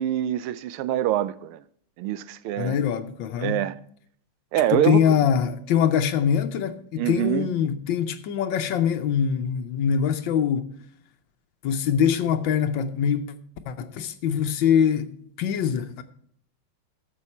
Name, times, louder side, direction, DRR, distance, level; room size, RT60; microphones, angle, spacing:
voice 1, 0.0-1.6 2.0-2.8 3.4-3.8 4.5-5.2 7.0-7.5, right 12 dB, 85° right, 1.5 m, -25 dB
voice 2, 2.6-3.6 4.7-10.7 11.6-13.3 13.7-15.1 15.4-16.0, left 8 dB, 70° left, 1.3 m, -23 dB
13.5 x 7.1 x 4.3 m
omnidirectional pair, 2.3 m